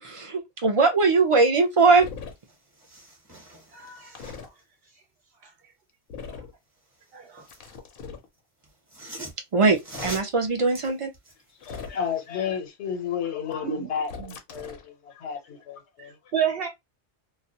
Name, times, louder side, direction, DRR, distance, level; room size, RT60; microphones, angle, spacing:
voice 1, 0.0-2.1 9.5-11.1, right 3 dB, 45° right, 0.4 m, -21 dB
sound 1, 2.0-2.3 4.1-4.5 6.1-6.5 7.5-8.3 9.8-10.2 11.6-12.2 14.0-14.9, left 5 dB, 60° left, 0.7 m, -39 dB
sound 2, 2.0-2.1 2.4-4.6 6.8-7.8 8.6-12.0 12.4-12.5, right 1 dB, 25° right, 0.8 m, -44 dB
voice 2, 3.7-4.2 5.4-5.5 6.3-6.4 7.1-7.4 13.6-13.9 14.2-14.3 16.3-16.7, right 8 dB, 65° right, 0.8 m, -29 dB
voice 3, 11.6-14.9 15.2-15.8, left 7 dB, 85° left, 1.0 m, -31 dB
2.3 x 2.2 x 2.6 m
omnidirectional pair, 1.1 m